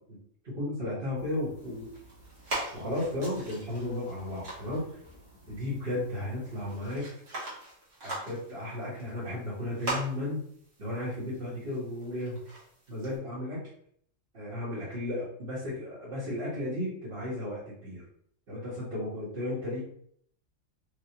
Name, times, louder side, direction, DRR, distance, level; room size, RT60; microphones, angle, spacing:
voice 1, 0.4-1.9 2.7-4.9 5.5-7.1 8.0-10.4 10.8-12.4 12.9-13.6 14.3-18.0 18.5-19.8, left 1 dB, 50° right, -10 dB, 1.6 m, -34 dB
sound 1, 1.1-7.0, equal, 20° right, 1.2 m, -56 dB
sound 2, 1.6-13.2, right 2 dB, 65° right, 1.6 m, -42 dB
5.0 x 2.5 x 2.9 m, 0.66 s
omnidirectional pair, 1.3 m